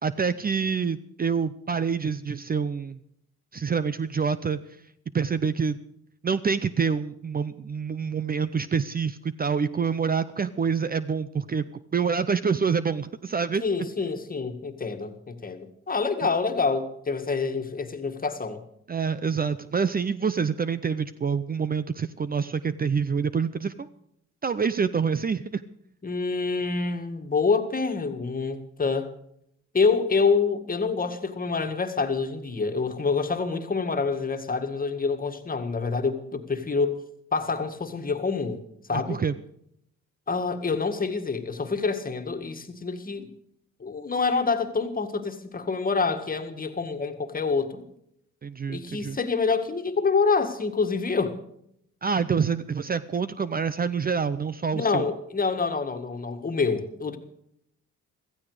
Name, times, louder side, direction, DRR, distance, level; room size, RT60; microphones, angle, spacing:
voice 1, 0.0-3.0 3.5-4.6 5.1-5.8 6.2-11.6 11.9-13.6 18.9-23.9 24.4-25.6 38.9-39.3 48.4-49.2 52.0-55.1, right 6 dB, 30° right, 0.7 m, -26 dB
voice 2, 13.6-18.6 26.0-29.1 29.7-37.0 37.3-38.6 38.9-39.2 40.3-43.3 43.8-47.8 48.7-51.4 54.7-57.2, left 4 dB, 30° left, 2.0 m, -27 dB
16.0 x 14.5 x 5.0 m
cardioid pair, 90°, 30 cm